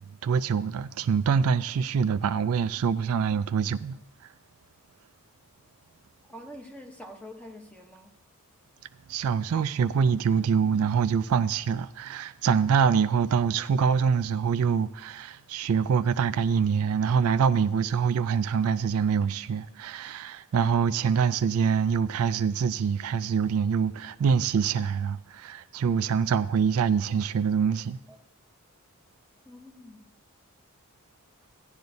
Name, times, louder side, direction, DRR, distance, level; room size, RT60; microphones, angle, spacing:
voice 1, 0.2-4.0 9.1-28.0, right 6 dB, 75° right, 0.3 m, -25 dB
voice 2, 6.3-8.1 28.1-28.2 29.4-30.1, equal, 5° left, 0.9 m, -45 dB
15.5 x 10.5 x 2.7 m
head